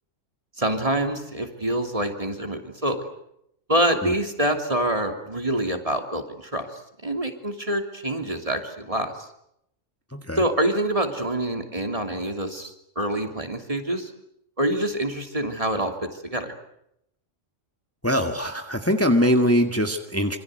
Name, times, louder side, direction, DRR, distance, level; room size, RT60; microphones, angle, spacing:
voice 1, 0.6-3.0 3.7-6.7 7.0-9.3 10.3-14.1 14.6-15.9 16.2-16.5, right 1 dB, 25° right, 5 dB, 3.1 m, -26 dB
voice 2, 18.0-20.4, equal, 10° left, 5 dB, 1.8 m, -22 dB
27.0 x 25.0 x 7.9 m, 0.77 s
omnidirectional pair, 1.3 m